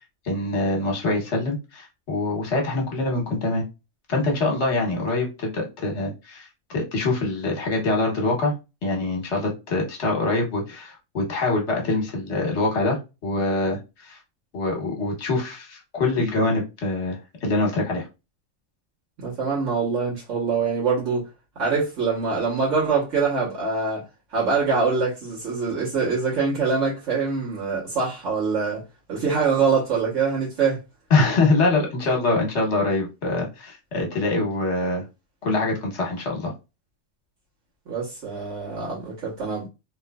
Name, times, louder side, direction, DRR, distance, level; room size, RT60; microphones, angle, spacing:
voice 1, 0.2-3.6 4.1-6.5 6.7-8.5 8.8-14.2 14.5-18.1 31.1-35.0 35.4-36.5, left 2 dB, 70° left, 1.3 m, -24 dB
voice 2, 19.2-21.3 21.5-24.0 24.3-28.8 29.1-30.8 37.9-39.7, right 5 dB, 90° right, 1.6 m, -24 dB
3.1 x 3.1 x 2.3 m
omnidirectional pair, 1.3 m